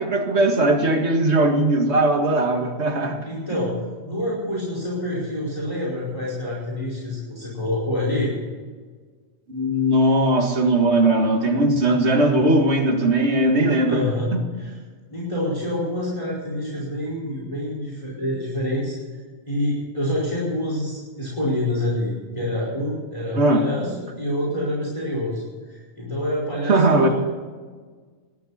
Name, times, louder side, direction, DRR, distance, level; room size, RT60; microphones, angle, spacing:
voice 1, 0.0-3.3 9.5-14.0 14.3-14.4 23.3-23.7 26.7-27.1, right 1 dB, 80° right, 2.1 m, -19 dB
voice 2, 3.2-3.7 4.1-8.3 13.9-14.3 14.6-14.7 15.1-19.0 19.5-25.4 25.7-27.1, left 1 dB, 30° left, 5.1 m, -27 dB
19.0 x 14.0 x 4.3 m
omnidirectional pair, 1.1 m